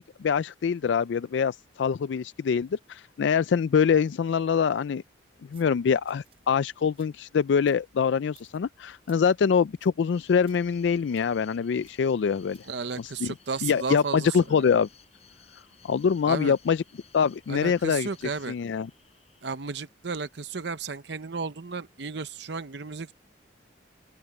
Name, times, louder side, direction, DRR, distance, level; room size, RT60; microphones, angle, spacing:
voice 1, 0.0-5.0 5.5-12.6 13.0-13.3 13.6-14.9 15.8-16.8 17.1-18.1 18.5-18.9, left 6 dB, 70° left, 0.3 m, -24 dB
sound 1, 5.3-13.3, right 5 dB, 30° right, 8.0 m, -64 dB
sound 2, 10.1-19.5, left 6 dB, 35° left, 5.7 m, -57 dB
voice 2, 12.6-14.7 16.2-16.5 17.5-18.5 19.4-23.1, right 4 dB, 60° right, 0.7 m, -34 dB
open air
head